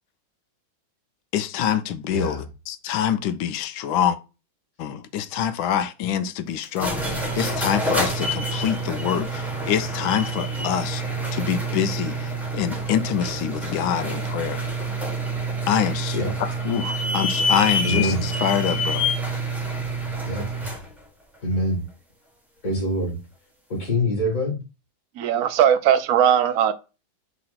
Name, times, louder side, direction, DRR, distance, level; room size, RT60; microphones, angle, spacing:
voice 1, 1.3-4.2 4.8-11.0 11.3-14.6 15.7-19.1, left 9 dB, 90° left, 1.4 m, -25 dB
voice 2, 2.1-2.4 16.1-16.3 17.8-18.2 20.2-20.4 21.4-21.8 22.6-23.2 23.7-24.6, equal, 40° left, 2.4 m, -24 dB
sound 1, 6.6-20.9, right 1 dB, ahead, 0.9 m, -27 dB
voice 3, 25.2-26.7, right 9 dB, 70° right, 0.8 m, -19 dB
5.8 x 3.0 x 5.7 m
omnidirectional pair, 2.2 m